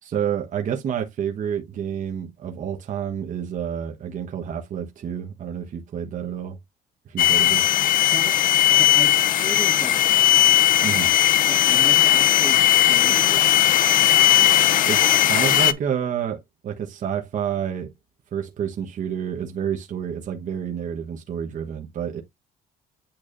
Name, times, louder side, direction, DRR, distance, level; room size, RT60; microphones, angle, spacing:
voice 1, 0.0-6.6 7.0-7.7 10.8-11.1 14.9-17.9 18.3-22.2, right 8 dB, 50° right, 1.3 m, -29 dB
sound 1, 7.2-15.7, left 12 dB, 55° left, 0.6 m, -17 dB
voice 2, 8.7-10.6 11.5-13.6, equal, 10° left, 2.2 m, -36 dB
8.9 x 4.7 x 2.6 m
cardioid pair, 110°, 17 cm